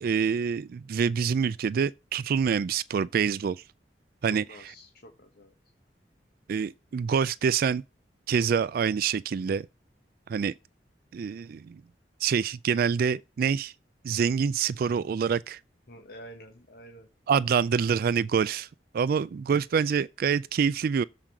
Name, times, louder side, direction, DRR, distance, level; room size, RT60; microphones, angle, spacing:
voice 1, 0.0-3.6 4.2-4.4 6.5-7.8 8.3-9.7 10.3-10.5 11.1-11.8 12.2-13.7 14.0-15.6 17.3-18.7 18.9-21.0, right 6 dB, 55° right, 0.3 m, -26 dB
voice 2, 4.3-5.5 15.9-17.1, equal, 60° left, 1.4 m, -48 dB
7.4 x 5.0 x 6.1 m
head